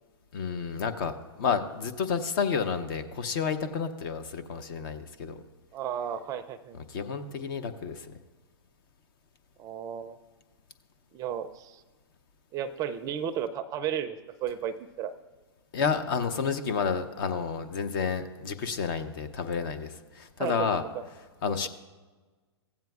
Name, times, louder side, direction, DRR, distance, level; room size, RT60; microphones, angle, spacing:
voice 1, 0.3-5.4 6.9-8.1 15.7-20.8 21.4-21.7, left 6 dB, 55° left, 9 dB, 0.7 m, -30 dB
voice 2, 5.7-6.8 9.6-10.2 11.1-11.8 12.5-15.1 20.4-20.7 20.9-21.0 21.5-21.7, right 9 dB, 25° right, 11 dB, 0.4 m, -34 dB
15.5 x 8.8 x 2.4 m, 1.3 s
hypercardioid pair, 125°, 14 cm